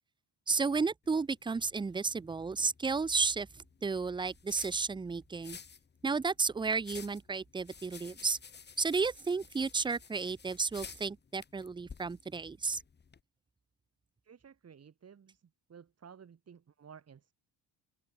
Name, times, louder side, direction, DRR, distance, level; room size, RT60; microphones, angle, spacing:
voice 1, 0.5-5.6 6.0-8.4 8.8-12.8, right 4 dB, 10° right, 0.4 m, -32 dB
sound 1, 1.0-13.2, left 6 dB, 25° left, 1.1 m, -53 dB
voice 2, 14.2-17.3, right 7 dB, 35° right, 2.3 m, -55 dB
open air
cardioid pair, 130°, 43 cm